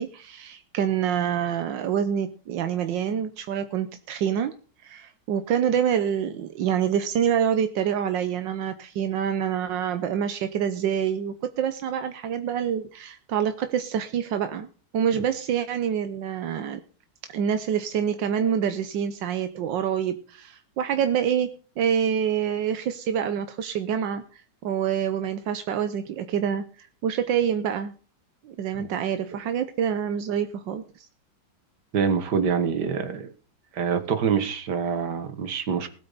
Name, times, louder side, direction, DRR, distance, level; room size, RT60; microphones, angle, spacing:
voice 1, 0.0-4.5 4.8-14.7 14.9-16.8 17.3-27.9 28.4-31.1, right 8 dB, 85° right, 9 dB, 1.6 m, -26 dB
voice 2, 31.9-33.3 33.7-35.9, right 6 dB, 65° right, 10 dB, 2.0 m, -25 dB
19.5 x 8.8 x 4.1 m, 0.40 s
omnidirectional pair, 1.9 m